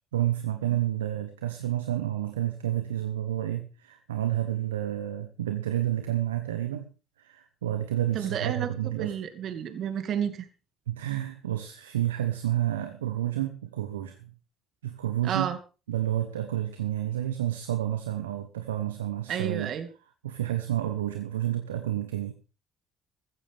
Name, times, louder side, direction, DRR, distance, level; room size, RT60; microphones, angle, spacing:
voice 1, 0.1-6.9 7.2-9.1 10.9-14.3 14.8-15.5 15.9-19.7 20.2-22.3, right 12 dB, 90° right, 8 dB, 1.0 m, -30 dB
voice 2, 8.1-10.5 15.2-15.6 19.3-19.9, right 8 dB, 60° right, 9 dB, 2.2 m, -31 dB
14.5 x 14.5 x 3.5 m, 0.33 s
hypercardioid pair, 55°, 0 cm